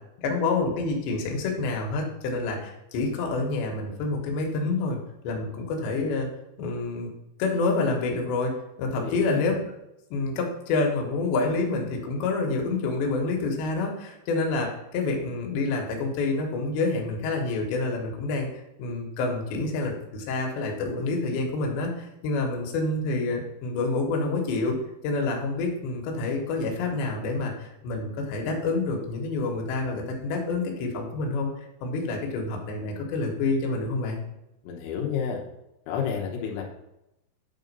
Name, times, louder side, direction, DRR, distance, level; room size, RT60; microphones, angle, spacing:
voice 1, 0.2-5.0 5.2-6.3 6.6-7.1 7.4-8.5 8.8-9.5 10.1-18.5 18.8-24.8 25.0-31.5 31.8-34.2, left 3 dB, 75° left, 1 dB, 3.4 m, -28 dB
voice 2, 9.0-9.5 34.6-35.4 35.9-36.6, left 7 dB, 90° left, -1 dB, 3.5 m, -30 dB
9.5 x 3.9 x 5.3 m, 0.89 s
omnidirectional pair, 5.3 m